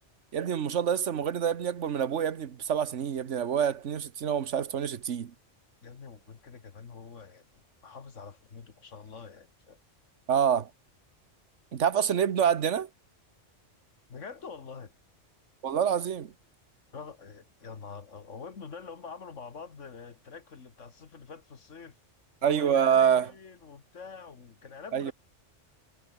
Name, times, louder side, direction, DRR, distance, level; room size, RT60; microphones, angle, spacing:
voice 1, 0.3-5.3 10.3-10.7 11.7-12.9 15.6-16.3 22.4-23.3 24.9-25.1, right 8 dB, 75° right, 1.4 m, -26 dB
voice 2, 5.8-9.8 14.1-14.9 16.9-22.0 22.4-25.1, left 5 dB, 80° left, 2.1 m, -45 dB
omnidirectional pair, 1.2 m